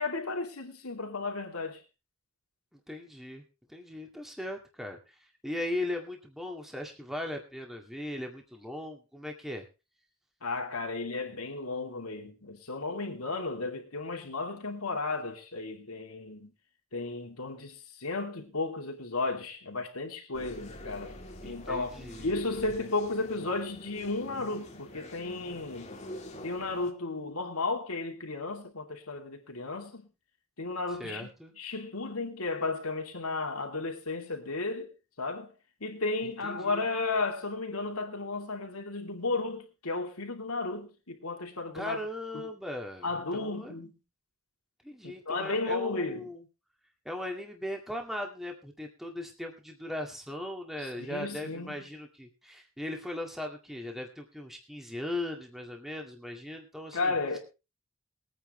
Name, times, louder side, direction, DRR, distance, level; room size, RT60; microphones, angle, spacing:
voice 1, 0.0-1.8 10.4-16.5 16.9-21.2 21.4-21.9 22.2-25.9 26.4-30.1 30.6-31.3 31.6-34.9 35.2-35.5 35.8-42.0 42.3-42.5 43.0-43.9 45.0-46.3 50.8-51.8 56.9-57.4, left 3 dB, 85° left, 3.0 m, -34 dB
voice 2, 2.7-3.4 3.7-9.7 21.4-22.3 30.9-31.5 36.2-36.8 41.7-43.1 43.3-43.7 44.8-46.4 47.0-57.4, left 1 dB, ahead, 2.1 m, -38 dB
sound 1, 20.3-26.9, left 1 dB, 30° left, 1.8 m, -46 dB
22.5 x 9.4 x 3.3 m
head